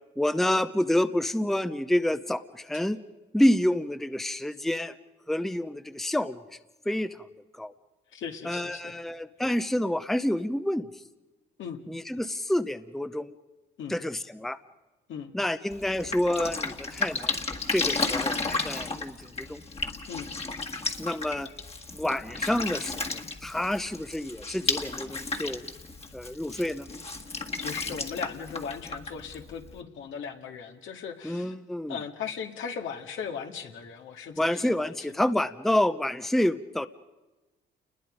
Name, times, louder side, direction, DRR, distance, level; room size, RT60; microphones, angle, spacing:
voice 1, 0.2-3.0 3.3-4.9 5.3-6.4 6.9-7.2 7.6-7.7 8.4-10.9 11.9-13.3 13.9-14.6 15.3-17.3 17.7-19.6 21.0-21.5 21.9-25.6 26.1-26.9 31.2-32.0 34.4-36.9, left 1 dB, ahead, 12 dB, 0.7 m, -28 dB
voice 2, 8.1-8.9 11.6-11.8 13.8-14.0 15.1-15.3 20.1-20.3 27.3-31.6 31.9-34.9, left 6 dB, 75° left, 4 dB, 2.1 m, -38 dB
Drip, 15.7-29.8, left 3 dB, 30° left, 1.8 m, -33 dB
28.5 x 21.0 x 5.2 m, 1.1 s
cardioid pair, 90°, 20 cm